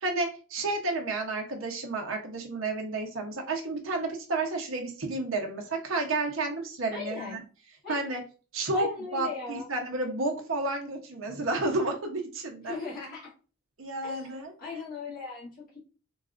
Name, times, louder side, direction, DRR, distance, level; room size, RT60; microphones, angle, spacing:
voice 1, 0.0-7.4 7.9-8.2 8.5-12.8 13.8-14.5, right 2 dB, 70° right, 2 dB, 0.8 m, -31 dB
voice 2, 6.9-7.4 7.8-8.0 8.7-9.7 12.6-13.3 14.0-15.8, left 4 dB, 40° left, -7 dB, 1.5 m, -38 dB
4.1 x 2.3 x 2.4 m, 0.37 s
head